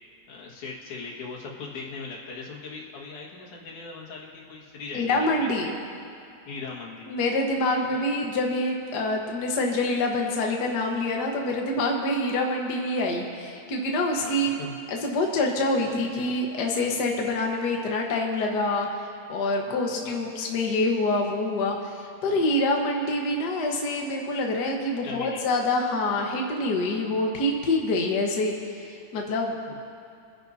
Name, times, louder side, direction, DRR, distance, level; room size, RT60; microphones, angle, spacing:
voice 1, 0.3-5.5 6.5-7.1 7.9-8.0 14.2-14.8 19.7-20.2 22.3-22.5 25.0-25.4 29.7-29.8, left 4 dB, 90° left, -3 dB, 3.1 m, -39 dB
voice 2, 4.9-5.7 7.1-14.6 14.9-18.9 19.3-21.9 22.2-29.8, left 2 dB, 50° left, 1 dB, 1.3 m, -26 dB
26.0 x 10.0 x 2.7 m, 2.4 s
omnidirectional pair, 3.4 m